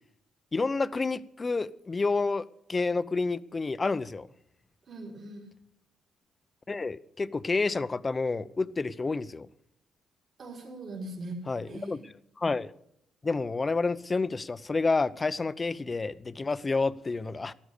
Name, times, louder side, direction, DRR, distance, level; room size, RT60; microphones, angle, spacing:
voice 1, 0.5-4.3 6.7-9.5 11.5-12.0 12.4-12.7 13.2-17.5, left 3 dB, 25° left, 0.7 m, -29 dB
voice 2, 4.9-5.5 10.4-12.0, right 2 dB, 50° right, 3.7 m, -41 dB
13.0 x 12.5 x 6.6 m
cardioid pair, 90°, 0 cm